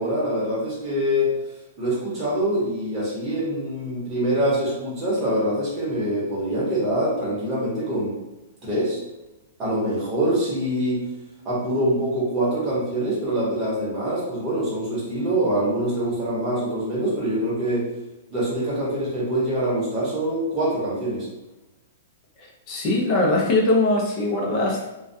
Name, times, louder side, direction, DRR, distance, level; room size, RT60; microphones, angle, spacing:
voice 1, 0.0-1.4 1.8-8.2 8.6-9.0 9.6-11.0 11.4-17.9 18.3-21.3, right 1 dB, 20° right, -7 dB, 1.0 m, -24 dB
voice 2, 22.4-24.9, left 2 dB, 30° left, -2 dB, 0.6 m, -21 dB
2.2 x 2.2 x 2.6 m, 1.0 s
hypercardioid pair, 160°, 0 cm